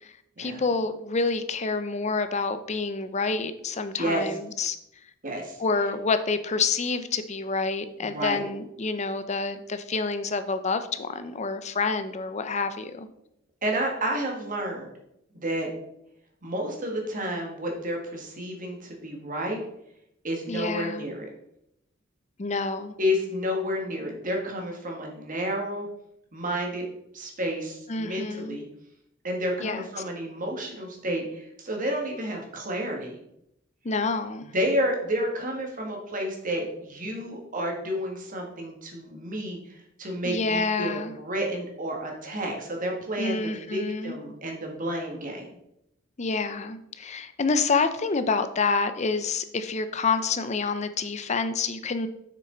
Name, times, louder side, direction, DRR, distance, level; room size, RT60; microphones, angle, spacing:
voice 1, 0.4-4.8 5.6-13.1 20.5-21.1 22.4-22.9 27.9-28.6 29.6-29.8 33.8-34.5 40.2-41.1 43.2-44.2 46.2-52.1, left 4 dB, 35° left, 11 dB, 0.5 m, -28 dB
voice 2, 5.2-5.6 8.0-8.5 13.6-14.9 15.3-15.7 16.4-19.6 20.2-21.3 23.0-25.9 26.3-26.8 27.1-28.6 29.2-33.2 34.4-45.5, equal, 40° right, 1 dB, 1.7 m, -30 dB
6.8 x 6.4 x 3.9 m, 0.78 s
head